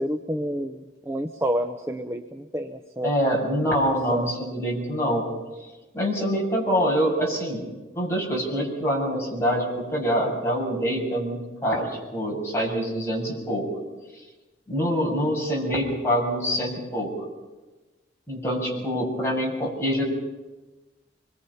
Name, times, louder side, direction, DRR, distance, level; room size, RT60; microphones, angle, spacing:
voice 1, 0.0-3.1 4.1-4.3 18.9-19.1, equal, 15° right, 5 dB, 0.7 m, -29 dB
voice 2, 3.0-5.3 5.9-7.7 8.0-13.7 14.7-17.1 18.3-20.0, equal, 15° left, -3 dB, 7.0 m, -25 dB
26.0 x 22.5 x 5.7 m, 1.2 s
head